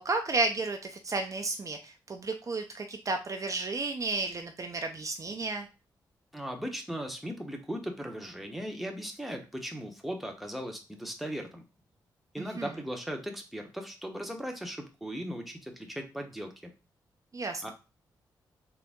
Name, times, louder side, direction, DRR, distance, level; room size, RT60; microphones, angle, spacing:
voice 1, 0.0-5.7 12.4-12.7 17.3-17.7, right 3 dB, 45° right, 5 dB, 0.6 m, -32 dB
voice 2, 6.3-11.6 12.3-16.7 17.6-17.7, equal, ahead, 2 dB, 1.0 m, -38 dB
3.9 x 2.1 x 3.6 m, 0.30 s
cardioid pair, 55°, 8 cm